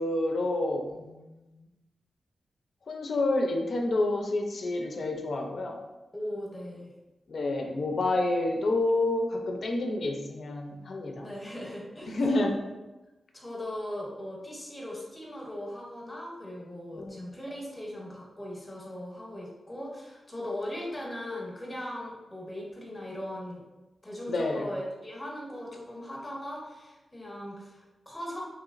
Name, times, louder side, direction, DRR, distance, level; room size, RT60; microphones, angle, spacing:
voice 1, 0.0-1.5 2.9-5.8 7.3-11.3 12.1-12.6 17.0-17.1 24.3-24.7, left 2 dB, 60° left, 2 dB, 0.4 m, -28 dB
voice 2, 6.1-6.9 11.2-12.2 13.3-23.7 24.0-28.4, left 1 dB, 20° left, -3 dB, 0.8 m, -39 dB
3.0 x 2.9 x 2.4 m, 1.1 s
wide cardioid pair, 85°, 0 cm